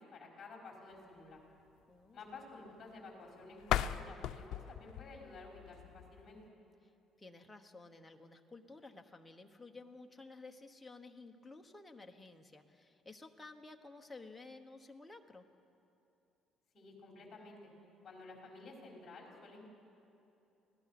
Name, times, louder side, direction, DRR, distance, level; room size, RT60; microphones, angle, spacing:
voice 1, 0.0-1.4 2.1-6.4 16.7-17.7 18.0-19.7, left 3 dB, 30° left, -1 dB, 5.2 m, -52 dB
voice 2, 1.9-2.2 7.2-15.4, left 3 dB, 10° left, 3 dB, 1.1 m, -53 dB
sound 1, 3.6-6.5, left 11 dB, 70° left, 0.5 m, -38 dB
25.5 x 17.5 x 6.0 m, 2.8 s
cardioid pair, 150°, 0 cm